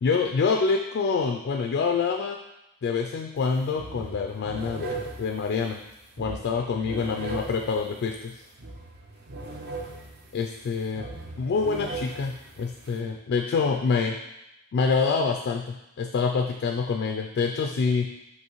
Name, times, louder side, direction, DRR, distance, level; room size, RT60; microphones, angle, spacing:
voice 1, 0.0-2.4 2.8-5.8 6.2-8.3 10.3-11.1 11.4-14.2 14.7-18.1, left 5 dB, 55° left, 3 dB, 0.3 m, -26 dB
sound 1, 3.4-3.5 3.7-13.0, right 3 dB, 50° right, 0.6 m, -39 dB
5.4 x 3.2 x 3.0 m, 0.89 s
head